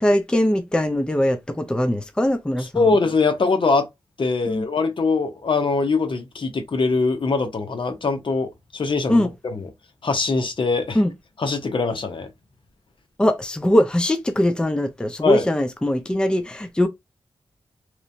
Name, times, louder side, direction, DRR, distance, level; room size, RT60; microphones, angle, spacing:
voice 1, 0.0-2.9 4.4-4.6 9.1-9.3 10.9-11.1 13.2-16.9, left 1 dB, 10° left, 0.4 m, -21 dB
voice 2, 2.6-3.9 4.2-9.7 10.0-11.0 11.4-12.3 15.2-15.4, left 4 dB, 60° left, 0.8 m, -22 dB
3.0 x 2.1 x 2.6 m
wide cardioid pair, 70°, 9 cm